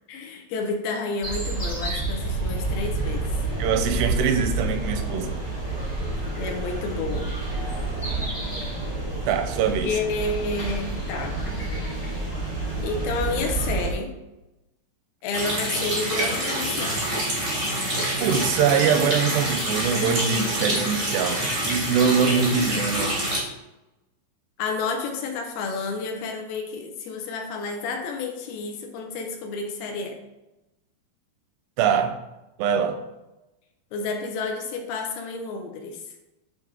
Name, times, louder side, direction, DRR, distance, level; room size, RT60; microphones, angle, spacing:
voice 1, 0.1-3.3 6.4-7.2 9.8-11.3 12.8-14.1 15.2-17.0 24.6-30.2 33.9-36.0, left 4 dB, 75° left, 3 dB, 2.4 m, -30 dB
sound 1, 1.2-13.9, right 2 dB, 15° left, 0.7 m, -29 dB
voice 2, 3.6-5.4 9.3-9.9 18.2-23.2 31.8-32.2 32.6-33.0, right 7 dB, 85° right, 6 dB, 2.7 m, -23 dB
Water tap faucet, 15.3-23.4, right 1 dB, 50° right, 0.9 m, -26 dB
9.9 x 3.6 x 3.5 m, 0.99 s
omnidirectional pair, 4.8 m